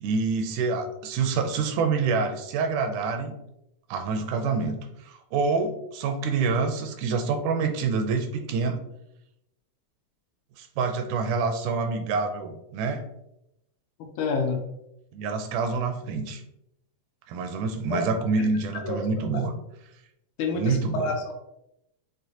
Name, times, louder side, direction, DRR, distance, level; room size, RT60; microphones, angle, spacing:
voice 1, 0.0-3.3 3.9-8.8 10.6-13.0 15.1-16.4 17.3-19.5 20.5-21.1, right 4 dB, 80° right, 5 dB, 1.9 m, -27 dB
voice 2, 14.2-14.6 17.9-18.0 18.4-18.5 18.8-19.0 20.4-21.3, left 4 dB, 80° left, 2 dB, 1.9 m, -28 dB
6.2 x 2.1 x 2.7 m, 0.83 s
omnidirectional pair, 3.6 m